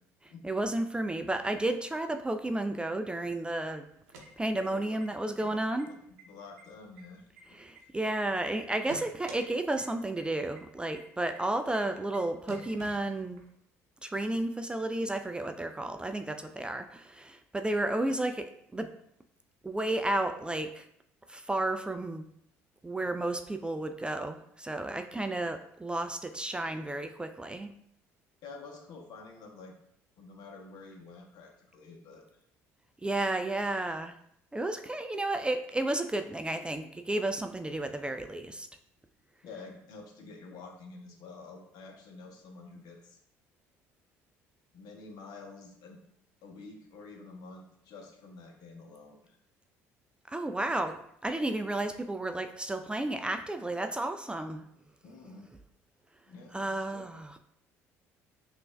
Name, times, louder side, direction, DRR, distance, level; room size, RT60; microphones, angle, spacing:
voice 1, 0.4-3.9 4.4-5.9 7.5-13.4 14.0-18.9 19.6-20.9 21.3-22.3 22.8-27.7 33.0-34.1 34.5-38.7 50.3-54.6 56.5-57.4, right 2 dB, 15° right, 8 dB, 0.3 m, -32 dB
sound 1, 3.9-5.0 5.4-5.5 5.8-6.2 6.6-8.2 8.5-9.4 9.8-9.9 10.2-10.3 10.6-10.7 11.0-11.1 11.3-11.4 11.7-11.8 12.1-12.2 12.5-13.5, right 3 dB, 85° right, 0.7 m, -48 dB
voice 2, 4.7-5.0 5.4-5.6 5.9-6.0 6.3-7.9 28.4-29.7 30.2-32.2 39.4-43.2 44.7-46.0 46.4-49.4 55.0-55.5 56.3-57.1, left 3 dB, 60° left, 1 dB, 0.9 m, -49 dB
6.0 x 2.5 x 2.2 m, 0.73 s
hypercardioid pair, 60°, 8 cm